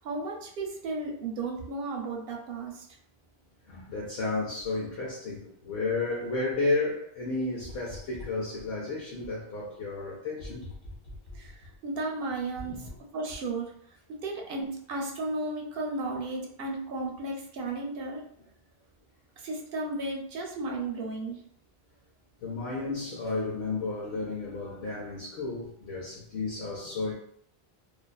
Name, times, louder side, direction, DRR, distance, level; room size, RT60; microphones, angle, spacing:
voice 1, 0.0-2.9 11.3-13.7 14.1-18.2 19.4-21.4, right 2 dB, 70° right, 1 dB, 0.7 m, -34 dB
voice 2, 3.7-10.7 12.6-12.9 22.4-27.1, left 3 dB, 70° left, -4 dB, 0.8 m, -32 dB
2.4 x 2.3 x 2.3 m, 0.67 s
omnidirectional pair, 1.1 m